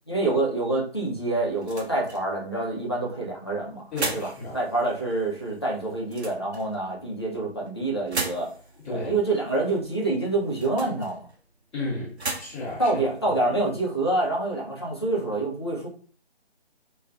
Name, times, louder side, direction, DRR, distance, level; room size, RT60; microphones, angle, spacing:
voice 1, 0.1-4.3 4.5-8.5 8.9-11.3 12.8-15.9, right 2 dB, 25° left, -3 dB, 0.4 m, -27 dB
sound 1, 0.9-14.3, right 3 dB, 85° right, 0.8 m, -39 dB
voice 2, 3.9-4.6 8.8-9.1 11.7-13.0, left 1 dB, ahead, -21 dB, 0.9 m, -33 dB
2.4 x 2.3 x 3.3 m, 0.43 s
figure-of-eight pair, 155°, 32 cm